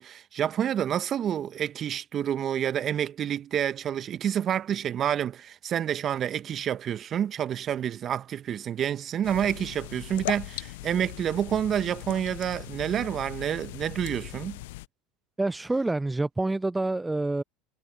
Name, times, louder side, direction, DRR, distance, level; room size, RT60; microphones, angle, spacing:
voice 1, 0.0-14.6, right 9 dB, 40° right, 1.4 m, -28 dB
sound 1, 9.2-14.9, left 20 dB, 70° left, 0.5 m, -39 dB
voice 2, 15.4-17.4, right 2 dB, 10° right, 0.4 m, -27 dB
hypercardioid pair, 80°, 0 cm